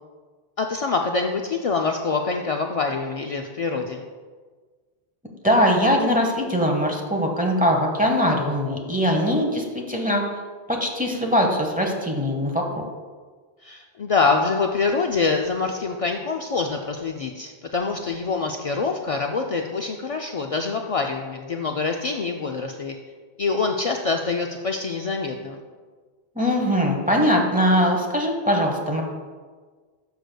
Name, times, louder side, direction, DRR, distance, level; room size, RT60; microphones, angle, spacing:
voice 1, 0.6-4.0 13.6-23.0 23.4-25.6, left 4 dB, 70° left, 2 dB, 0.3 m, -25 dB
voice 2, 5.4-10.2 10.7-12.8 26.3-29.0, equal, 10° right, 1 dB, 0.9 m, -21 dB
11.5 x 6.3 x 2.2 m, 1.5 s
omnidirectional pair, 1.1 m